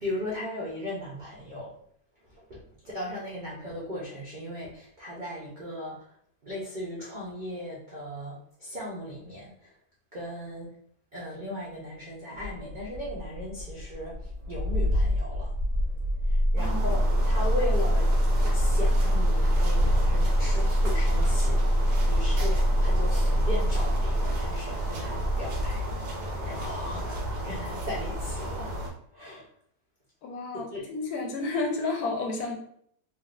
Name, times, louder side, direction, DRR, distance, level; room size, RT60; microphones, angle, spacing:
voice 1, 0.0-1.7 2.3-6.1 6.4-9.7 10.1-10.7 11.1-14.2 14.5-15.5 16.3-18.1 18.5-25.9 26.4-28.8 29.1-29.5 30.5-30.8, left 1 dB, 90° right, -6 dB, 0.4 m, -37 dB
Engine starting, 12.4-26.5, equal, 55° right, 1.4 m, -25 dB
voice 2, 16.6-17.0 30.2-32.6, left 3 dB, 70° left, 2 dB, 1.0 m, -31 dB
sound 1, 16.6-28.9, equal, 75° right, 1.3 m, -33 dB
3.5 x 2.4 x 2.4 m, 0.65 s
omnidirectional pair, 1.9 m